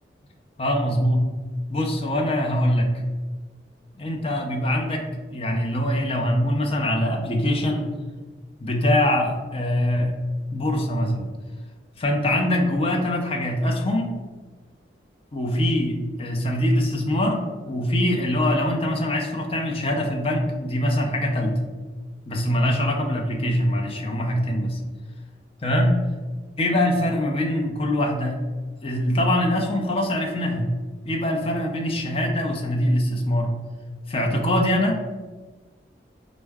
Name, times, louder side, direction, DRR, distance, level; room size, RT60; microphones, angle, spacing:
voice 1, 0.6-1.2 1.7-3.0 3.9-7.9 8.6-10.1 10.5-11.3 12.0-14.1 15.3-21.6 22.3-24.8 25.6-26.0 26.6-28.4 28.8-30.7 31.0-33.5 34.1-35.0, left 1 dB, 35° left, 1 dB, 0.5 m, -23 dB
4.4 x 2.1 x 3.4 m, 1.3 s
head